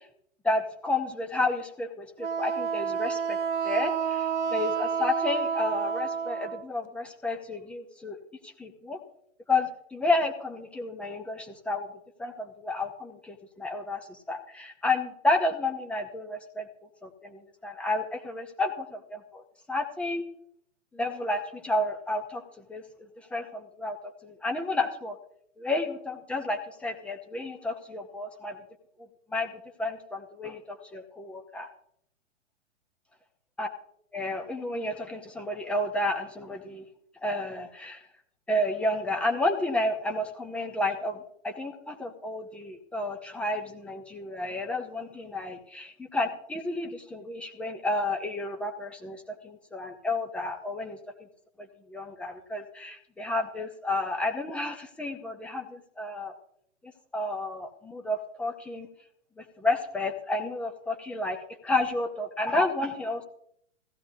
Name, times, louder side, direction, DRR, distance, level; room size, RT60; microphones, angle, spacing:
voice 1, 0.4-3.4 3.6-8.2 8.4-9.0 9.5-11.9 12.2-16.7 17.0-19.4 19.7-20.2 20.9-24.0 24.2-25.2 25.6-28.6 29.3-29.5 29.8-31.7 33.6-33.7 34.1-36.8 37.2-38.0 38.5-51.0 51.9-56.3 56.8-58.9 59.4-63.2, left 2 dB, 5° left, 4 dB, 0.5 m, -31 dB
Wind instrument woodwind instrument, 2.2-6.7, right 7 dB, 65° right, 0.8 m, -29 dB
15.5 x 14.0 x 2.6 m, 0.70 s
hypercardioid pair, 120°, 39 cm